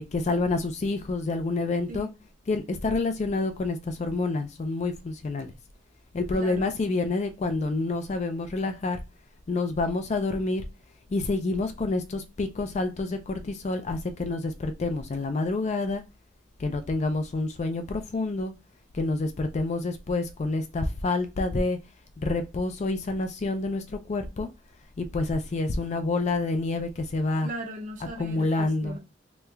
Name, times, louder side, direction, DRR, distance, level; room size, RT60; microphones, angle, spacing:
voice 1, 0.0-2.1 2.5-5.5 6.1-9.0 9.5-10.6 11.1-16.0 16.6-18.5 18.9-21.8 22.2-24.5 25.0-27.5 28.2-29.0, left 3 dB, 35° left, 0.4 m, -28 dB
voice 2, 6.3-6.7 27.4-29.0, right 1 dB, 40° right, 0.6 m, -38 dB
3.0 x 2.3 x 3.2 m
head